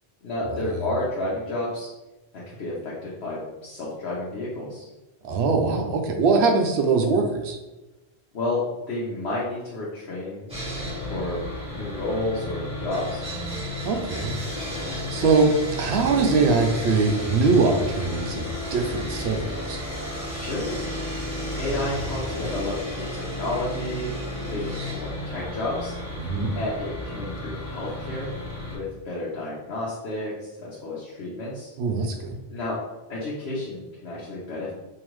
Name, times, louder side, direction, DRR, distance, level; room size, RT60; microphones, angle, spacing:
voice 1, 0.2-1.9 2.3-4.9 8.3-10.5 11.1-11.4 11.7-13.2 20.2-20.8 21.6-24.1 24.5-26.0 26.5-28.3 28.7-31.7 32.5-32.8 33.1-34.7, left 2 dB, 85° left, -6 dB, 1.1 m, -31 dB
voice 2, 5.2-7.6 13.8-14.7 15.1-19.4 19.7-19.8 26.2-26.5 31.8-32.4, right 4 dB, 80° right, 4 dB, 0.9 m, -22 dB
Sawing, 10.5-28.8, left 1 dB, 5° right, 1.2 m, -32 dB
3.7 x 2.7 x 3.1 m, 1.0 s
omnidirectional pair, 1.1 m